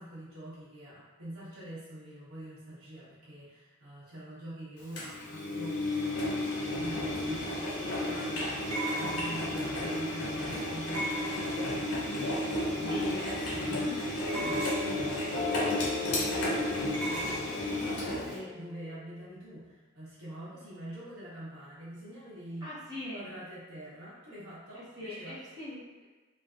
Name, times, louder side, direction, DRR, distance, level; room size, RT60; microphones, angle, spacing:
voice 1, 0.0-22.7 23.1-25.4, right 1 dB, 70° right, -9 dB, 1.0 m, -45 dB
Engine, 5.0-18.4, left 1 dB, 80° left, 0.7 m, -33 dB
sound 1, 7.1-7.2 8.7-9.5 10.9-11.8 14.3-15.0 16.9-17.5, right 1 dB, 85° right, 0.6 m, -36 dB
voice 2, 12.9-13.3 13.8-14.0 14.4-14.8 22.6-23.3 24.7-26.0, left 1 dB, 20° right, -11 dB, 0.7 m, -42 dB
sound 2, 14.2-19.3, left 5 dB, 40° left, 0.4 m, -39 dB
3.2 x 2.1 x 2.4 m, 1.3 s
head